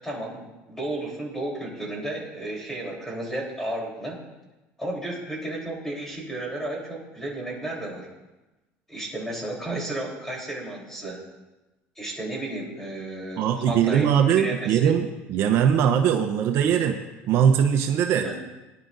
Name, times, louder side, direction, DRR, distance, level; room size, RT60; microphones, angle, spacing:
voice 1, 0.0-4.2 4.8-8.1 8.9-11.2 12.0-14.9 18.1-18.3, right 1 dB, 10° left, -2 dB, 3.6 m, -33 dB
voice 2, 13.4-17.0 17.3-18.2, right 8 dB, 55° right, 4 dB, 0.9 m, -21 dB
19.0 x 10.5 x 2.6 m, 1.1 s
cardioid pair, 130°, 5 cm